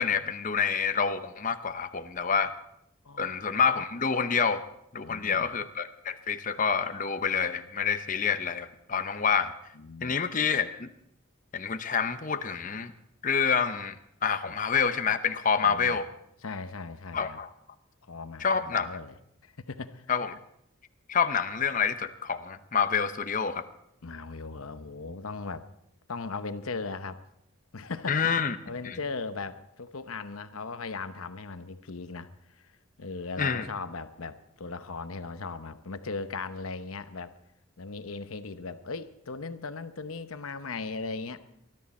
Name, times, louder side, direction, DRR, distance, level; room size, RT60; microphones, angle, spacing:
voice 1, 0.0-2.5 3.2-4.6 4.9-9.5 10.0-10.9 11.5-12.9 13.2-14.0 14.2-16.1 17.1-17.5 18.4-18.9 20.1-20.3 21.1-23.6 28.1-28.5 28.8-29.0 33.4-33.7, left 6 dB, 40° left, 10 dB, 0.7 m, -27 dB
voice 2, 5.0-5.5 9.7-10.2 14.4-14.6 15.6-16.0 16.4-17.4 18.0-20.1 24.0-25.7 26.1-27.2 27.7-28.4 28.7-32.7 33.0-37.3 37.8-41.4, left 4 dB, 85° left, 11 dB, 0.9 m, -38 dB
20.5 x 13.0 x 4.3 m, 0.76 s
head